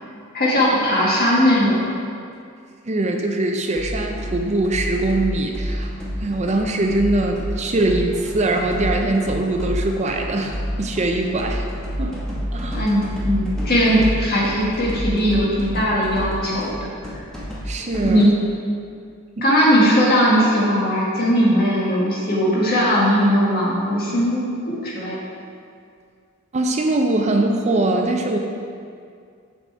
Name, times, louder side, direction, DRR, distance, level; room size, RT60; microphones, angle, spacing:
voice 1, 0.3-1.9 12.7-16.8 18.0-18.3 19.4-25.2, equal, 50° left, -5 dB, 1.8 m, -19 dB
voice 2, 2.9-5.9 6.2-11.7 12.0-12.2 12.5-12.9 17.7-18.3 19.4-19.5 26.5-28.4, right 2 dB, 35° right, 3 dB, 0.5 m, -22 dB
sound 1, 3.7-18.3, equal, 5° left, 1.2 m, -29 dB
6.9 x 5.7 x 4.6 m, 2.3 s
head